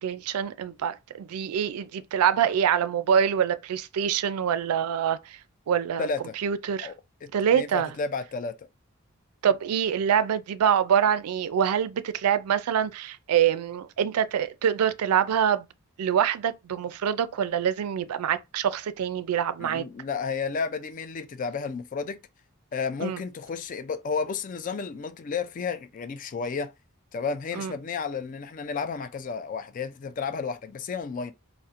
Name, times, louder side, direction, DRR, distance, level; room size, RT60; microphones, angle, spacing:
voice 1, 0.0-5.4 5.7-6.1 6.4-6.9 7.3-7.9 9.4-15.7 16.0-19.8 23.0-23.2 27.6-27.7, right 8 dB, 90° right, 0.3 m, -25 dB
voice 2, 6.0-6.4 6.8-6.9 7.2-8.7 19.6-22.2 22.7-26.7 27.1-31.3, left 5 dB, 35° left, 0.3 m, -32 dB
4.1 x 2.1 x 2.4 m
head